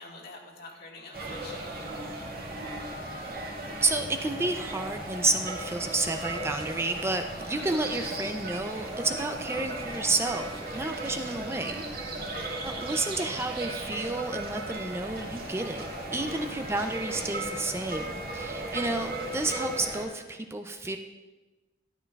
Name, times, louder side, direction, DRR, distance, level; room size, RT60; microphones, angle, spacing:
voice 1, 0.0-1.6 7.6-7.9 11.0-11.8 12.2-12.7 16.6-17.2 18.6-19.2, left 2 dB, 60° left, -1 dB, 1.8 m, -48 dB
sound 1, 1.1-20.1, right 2 dB, 55° right, 1.9 m, -36 dB
voice 2, 3.8-11.8 12.2-21.0, right 2 dB, 15° right, 6 dB, 0.4 m, -31 dB
12.5 x 11.5 x 2.3 m, 1.2 s
head